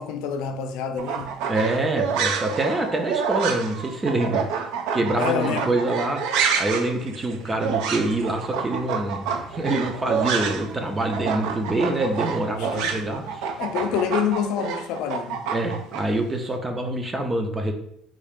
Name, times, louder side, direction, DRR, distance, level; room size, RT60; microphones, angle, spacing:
voice 1, 0.0-1.4 5.0-5.8 12.6-13.0 13.6-15.5, left 7 dB, 85° left, 0.4 m, -27 dB
sound 1, 1.0-10.7 11.0-16.0, right 6 dB, 85° right, 0.4 m, -28 dB
voice 2, 1.5-4.4 4.9-13.4 15.5-17.7, right 2 dB, 15° right, 0.4 m, -25 dB
sound 2, 6.9-14.5, right 1 dB, 35° right, 0.8 m, -46 dB
3.6 x 2.4 x 3.4 m
cardioid pair, 165°, 0 cm